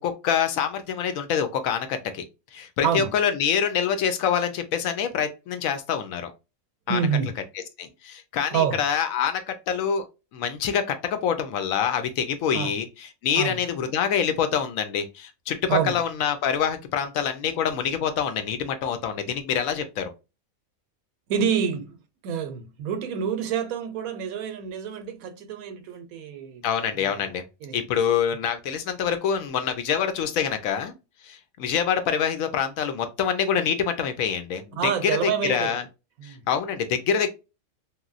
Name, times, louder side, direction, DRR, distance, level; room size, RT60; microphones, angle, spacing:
voice 1, 0.0-2.2 2.5-6.3 6.9-7.0 7.8-10.1 10.3-20.1 26.6-27.4 27.7-30.9 31.2-35.8 36.2-37.3, left 7 dB, 75° left, 0.9 m, -26 dB
voice 2, 2.8-3.1 6.9-7.4 8.5-8.8 12.5-12.7 13.3-13.6 15.7-16.0 21.3-22.0 22.2-26.6 26.9-27.2 27.6-27.8 34.8-35.8 36.2-36.4, right 7 dB, 80° right, 1.0 m, -27 dB
3.0 x 2.6 x 2.4 m
omnidirectional pair, 1.5 m